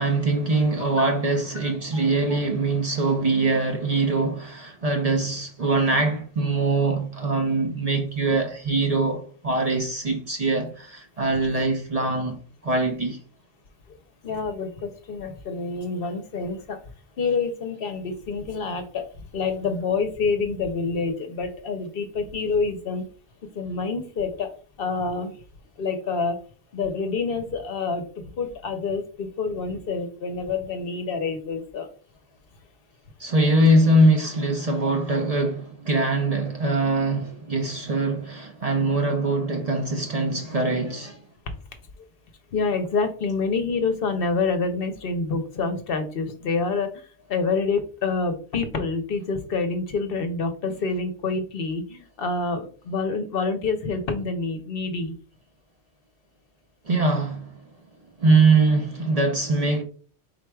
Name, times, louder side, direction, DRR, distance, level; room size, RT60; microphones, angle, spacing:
voice 1, 0.0-13.2 33.2-41.2 56.9-57.6 58.2-59.8, right 2 dB, 45° right, 0.6 m, -22 dB
voice 2, 0.8-1.1 1.6-2.0 13.9-14.0 14.2-16.8 17.2-19.1 19.3-23.0 23.5-24.5 24.8-25.4 25.8-26.4 26.7-31.9 41.5-41.6 42.0-42.1 42.5-55.2, left 4 dB, 60° left, 0.8 m, -27 dB
4.5 x 4.0 x 2.2 m
omnidirectional pair, 1.1 m